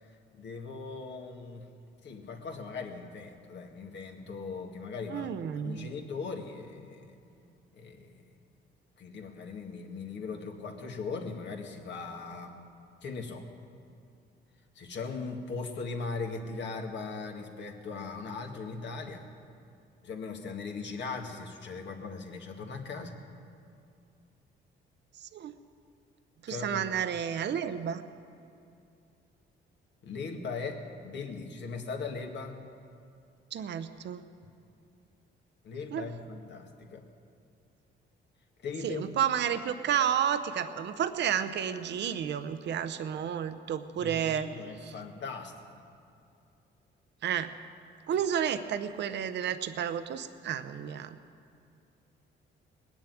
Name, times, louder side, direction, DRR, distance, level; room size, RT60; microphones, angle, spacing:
voice 1, 0.3-1.7 2.0-7.2 7.7-8.3 9.0-12.6 13.0-13.4 14.8-19.3 20.0-23.2 26.5-26.8 30.0-32.6 35.6-37.0 38.6-39.0 44.0-45.8, left 4 dB, 65° left, 3 dB, 1.8 m, -39 dB
voice 2, 5.1-5.9 25.2-25.6 26.4-28.0 33.5-34.2 35.9-36.1 38.8-44.5 47.2-47.5 48.1-51.2, right 9 dB, 60° right, 11 dB, 0.7 m, -31 dB
19.5 x 7.2 x 9.2 m, 2.5 s
cardioid pair, 90°, 20 cm